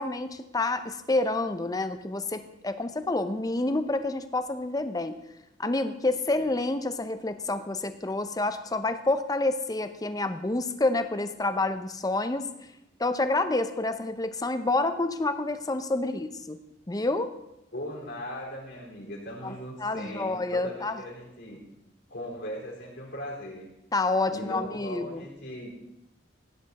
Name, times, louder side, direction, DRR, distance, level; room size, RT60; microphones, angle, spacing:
voice 1, 0.0-5.2 5.6-12.5 13.0-16.6 16.9-17.3 19.4-21.0 23.9-25.2, left 2 dB, 20° left, 10 dB, 0.7 m, -28 dB
voice 2, 17.7-21.7 22.1-23.7 24.3-25.7, equal, 65° left, -3 dB, 4.0 m, -39 dB
16.5 x 9.8 x 4.2 m, 0.87 s
head